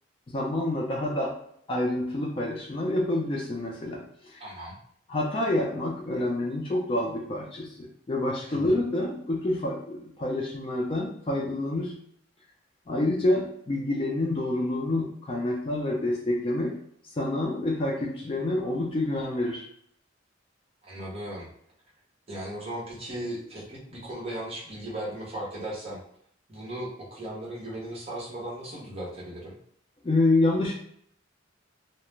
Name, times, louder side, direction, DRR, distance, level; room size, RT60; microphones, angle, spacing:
voice 1, 0.3-1.4 1.7-4.0 4.3-4.4 5.1-11.9 12.9-16.8 17.1-19.6 30.0-30.7, left 1 dB, 25° left, -2 dB, 0.3 m, -27 dB
voice 2, 4.4-4.8 8.5-8.8 20.8-21.5 22.3-26.0 26.5-29.5, right 1 dB, 30° right, -6 dB, 0.9 m, -37 dB
2.3 x 2.0 x 3.1 m, 0.67 s
head